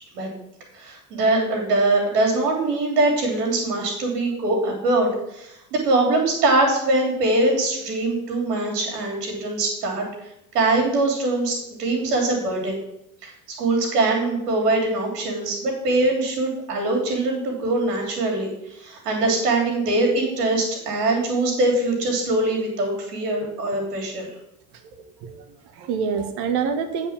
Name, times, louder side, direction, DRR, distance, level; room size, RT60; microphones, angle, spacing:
voice 1, 0.7-10.0 10.5-12.8 13.2-13.3 13.6-24.3, right 2 dB, 80° right, 0 dB, 3.0 m, -22 dB
voice 2, 24.7-27.1, right 6 dB, 60° right, 7 dB, 1.5 m, -27 dB
8.5 x 4.9 x 7.1 m, 0.83 s
hypercardioid pair, 75°, 46 cm